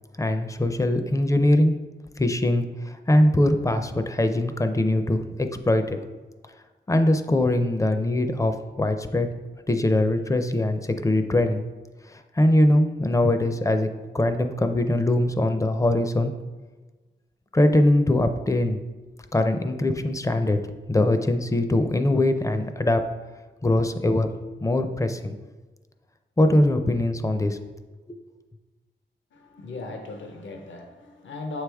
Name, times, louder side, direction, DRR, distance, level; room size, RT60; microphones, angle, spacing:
voice 1, 0.2-1.8 2.2-6.0 6.9-9.3 9.7-11.6 12.4-13.9 14.1-16.3 17.5-18.8 19.3-20.6 20.9-23.0 23.6-24.3 24.6-25.4 26.4-27.6 28.1-28.2, left 1 dB, 15° left, 7 dB, 0.4 m, -22 dB
voice 2, 29.3-31.6, left 3 dB, 80° left, 4 dB, 0.7 m, -37 dB
7.3 x 4.8 x 3.4 m, 1.3 s
wide cardioid pair, 115°, 20 cm